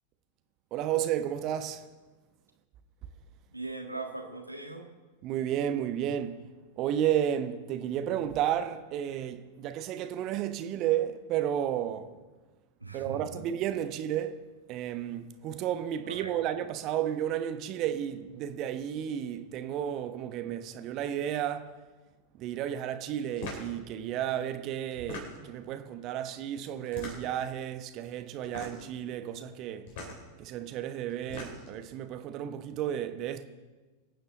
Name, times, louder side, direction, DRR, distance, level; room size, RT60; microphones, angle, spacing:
voice 1, 0.7-1.9 5.2-6.5 6.8-12.1 12.9-14.4 14.7-21.7 22.4-29.9 30.4-33.4, right 10 dB, 40° right, 1.0 m, -32 dB
voice 2, 3.5-4.9 12.8-13.4 16.1-16.3, right 3 dB, 85° right, 1.6 m, -40 dB
sound 1, 23.4-23.7 24.9-25.6 26.9-27.5 28.4-28.9 29.9-30.2 31.1-31.8, left 2 dB, 50° left, 3.4 m, -41 dB
23.5 x 9.0 x 3.9 m
figure-of-eight pair, 90°, 0 cm